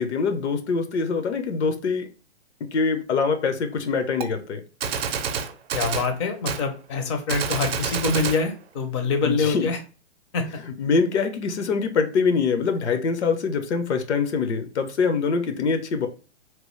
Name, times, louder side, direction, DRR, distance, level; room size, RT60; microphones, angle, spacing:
voice 1, 0.0-2.1 2.7-4.6 9.2-9.7 10.7-16.1, left 5 dB, 75° left, 0.8 m, -24 dB
Gunshot gunfire, 4.2-4.3 4.8-6.1 6.5-6.6 7.3-8.4, right 6 dB, 65° right, 0.6 m, -28 dB
voice 2, 5.7-9.8 10.3-10.4, left 4 dB, 25° left, 0.5 m, -25 dB
2.9 x 2.0 x 3.1 m
hypercardioid pair, 145°, 34 cm